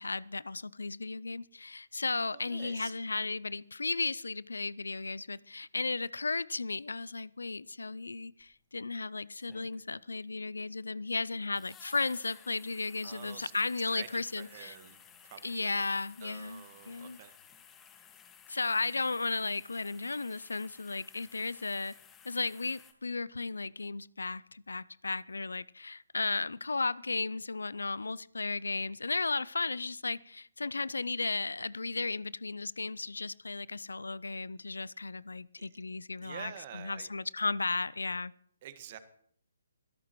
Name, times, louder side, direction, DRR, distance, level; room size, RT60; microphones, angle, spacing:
voice 1, 0.0-14.7 15.4-17.2 18.5-21.9 22.2-38.3, left 3 dB, 80° left, 22 dB, 0.4 m, -35 dB
voice 2, 2.3-2.9 13.0-13.5 13.9-17.4 35.6-35.7 36.2-37.1 38.6-39.0, right 10 dB, 40° right, 10 dB, 1.5 m, -48 dB
sound 1, 8.4-8.5 9.3-10.1 11.5-22.9, left 8 dB, 15° left, 1.5 m, -57 dB
24.0 x 13.0 x 3.1 m, 0.63 s
figure-of-eight pair, 140°, 0 cm